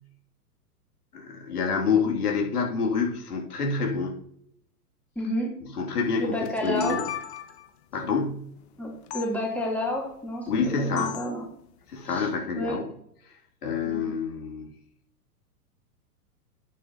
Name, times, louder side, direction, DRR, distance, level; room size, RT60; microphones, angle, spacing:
voice 1, 1.1-4.2 5.7-7.0 7.9-8.5 10.5-11.2 11.9-12.9 13.3-14.7, left 5 dB, 75° left, 0 dB, 2.9 m, -27 dB
voice 2, 5.1-5.6 6.2-7.0 8.8-11.4 12.1-12.2 12.6-12.8 13.8-14.1, left 1 dB, 5° left, -4 dB, 3.2 m, -30 dB
sound 1, 6.4-7.7 9.1-9.3 11.0-11.4, left 11 dB, 45° left, 1.1 m, -35 dB
9.0 x 8.5 x 2.9 m, 0.70 s
hypercardioid pair, 125°, 47 cm